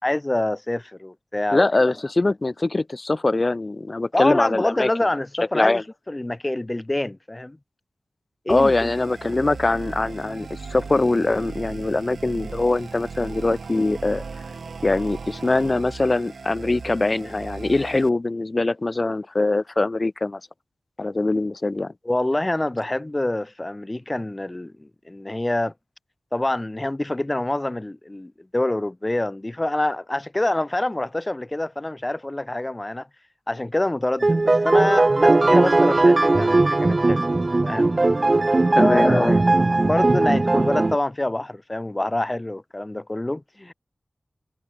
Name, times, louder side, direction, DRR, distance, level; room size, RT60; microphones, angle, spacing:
voice 1, 0.0-1.9 4.1-7.6 8.5-8.9 22.0-25.7 26.3-33.1 33.5-37.3 37.6-38.0 38.8-39.4 39.8-43.7, left 1 dB, 25° left, 2.1 m, -26 dB
voice 2, 1.5-4.9 5.5-5.8 8.5-14.2 14.8-20.4 21.0-21.9 38.7-39.3, left 2 dB, 40° left, 1.6 m, -22 dB
sound 1, 8.5-18.1, right 4 dB, 80° right, 1.7 m, -37 dB
sound 2, 34.2-41.0, right 2 dB, 40° right, 0.7 m, -18 dB
cardioid pair, 50°, 0 cm